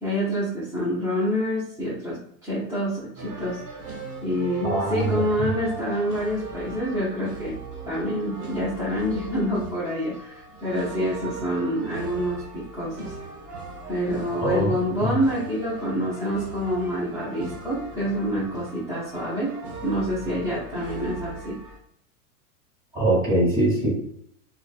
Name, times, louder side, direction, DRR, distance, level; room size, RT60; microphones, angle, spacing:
voice 1, 0.0-3.6 4.2-7.6 7.9-13.1 13.9-19.5 19.8-21.6, equal, 5° right, -11 dB, 0.6 m, -27 dB
sound 1, 3.2-21.8, right 3 dB, 55° right, 1.2 m, -38 dB
voice 2, 4.6-5.2 14.4-14.7 22.9-23.9, right 1 dB, 25° right, -4 dB, 1.4 m, -22 dB
3.1 x 2.3 x 2.4 m, 0.67 s
supercardioid pair, 140°, 47 cm